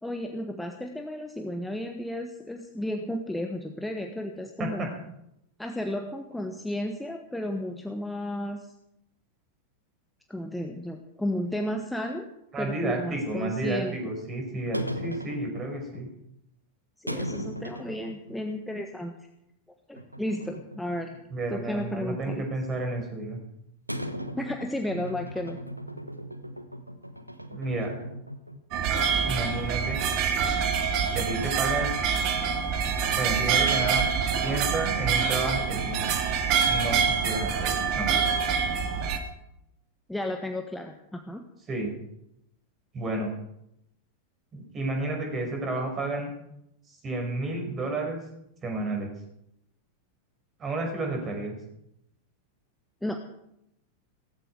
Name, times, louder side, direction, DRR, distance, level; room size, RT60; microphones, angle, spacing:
voice 1, 0.0-4.9 5.6-8.7 10.3-12.3 12.6-14.1 17.0-19.1 19.9-21.2 21.5-22.4 24.3-25.6 40.1-41.4 53.0-53.2, left 1 dB, 5° left, 4 dB, 1.4 m, -33 dB
voice 2, 12.5-16.1 21.3-23.4 27.5-27.9 29.3-30.0 31.1-31.9 33.1-34.0 34.4-36.0 36.6-37.0 37.2-38.2 41.7-41.9 42.9-43.3 44.5-46.3 47.0-48.2 48.6-49.1 50.6-51.5, right 2 dB, 25° right, 3 dB, 5.7 m, -31 dB
sound 1, 14.7-16.0 17.1-18.4 18.7-18.8 20.0-21.2 21.5-22.4 23.9-28.8 29.1-29.2 29.6-29.7 30.1-30.6, equal, 90° right, 1.2 m, -38 dB
sound 2, 28.7-39.2, right 6 dB, 40° right, 2.1 m, -26 dB
17.0 x 15.5 x 4.9 m, 0.80 s
figure-of-eight pair, 90°, 0 cm